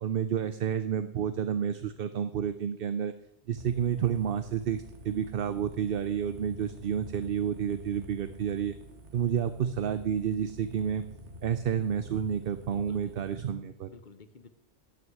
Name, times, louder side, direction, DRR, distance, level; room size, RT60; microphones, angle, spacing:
voice 1, 0.0-3.1 3.5-8.7 9.1-11.0 11.4-13.9, right 8 dB, 60° right, 12 dB, 0.8 m, -30 dB
sound 1, 3.6-13.5, left 1 dB, 80° right, 1.9 m, -47 dB
voice 2, 12.3-13.2 13.9-14.5, left 4 dB, 45° left, 12 dB, 0.9 m, -52 dB
12.0 x 6.5 x 9.2 m, 0.81 s
omnidirectional pair, 1.2 m